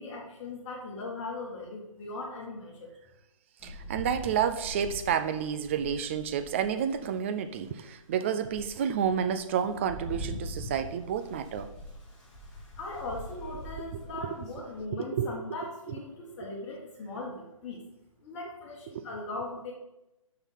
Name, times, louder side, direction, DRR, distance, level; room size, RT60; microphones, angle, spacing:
voice 1, 0.0-2.9 12.8-17.8 18.2-19.7, left 3 dB, 25° left, 1.6 m, -39 dB
Rain, 3.6-7.1 7.7-7.8 8.2-14.8, equal, 5° left, 2.2 m, -43 dB
voice 2, 3.6-11.7 13.9-14.5 14.9-15.5 18.9-19.0, right 8 dB, 20° right, 0.4 m, -30 dB
6.7 x 5.7 x 5.6 m
figure-of-eight pair, 140°, 17 cm